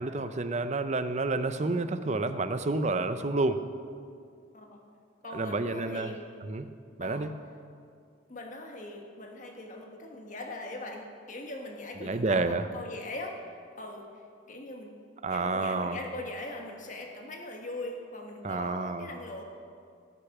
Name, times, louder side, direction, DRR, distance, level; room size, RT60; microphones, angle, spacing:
voice 1, 0.0-3.6 5.3-6.1 6.4-6.7 7.0-7.3 12.0-12.7 15.2-16.0 18.4-19.1, right 3 dB, 35° right, 10 dB, 0.5 m, -29 dB
voice 2, 5.2-6.2 7.0-7.3 8.3-14.9 15.3-19.4, left 2 dB, 40° left, 2 dB, 1.4 m, -41 dB
18.5 x 6.8 x 6.0 m, 2.3 s
head